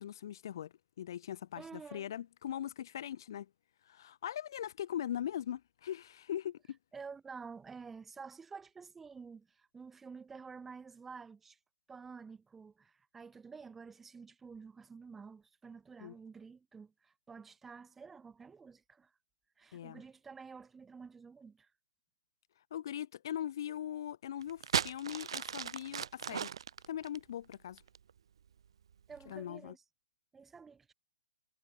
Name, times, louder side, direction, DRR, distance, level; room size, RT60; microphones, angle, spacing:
voice 1, 0.0-3.5 3.8-6.8 16.0-16.2 19.7-20.0 22.7-26.5 26.9-27.8 29.3-29.7, left 10 dB, 40° left, 0.9 m, -40 dB
voice 2, 1.6-2.1 6.9-11.6 11.9-19.1 19.6-21.7 29.1-29.8 30.3-30.9, right 5 dB, 5° right, 1.1 m, -50 dB
sound 1, 24.4-28.1 28.9-29.3, right 8 dB, 55° right, 0.4 m, -36 dB
hypercardioid pair, 175°, 3 cm